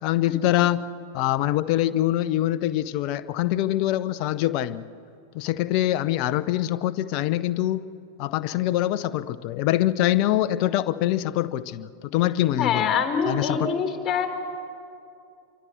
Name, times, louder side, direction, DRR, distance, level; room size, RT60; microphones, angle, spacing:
voice 1, 0.0-4.9 5.3-7.9 8.2-12.9 13.3-13.7, left 14 dB, 45° left, 15 dB, 0.7 m, -24 dB
voice 2, 12.6-14.3, left 6 dB, 20° left, 5 dB, 3.7 m, -24 dB
27.5 x 24.0 x 6.4 m, 2.5 s
figure-of-eight pair, 90°, 0 cm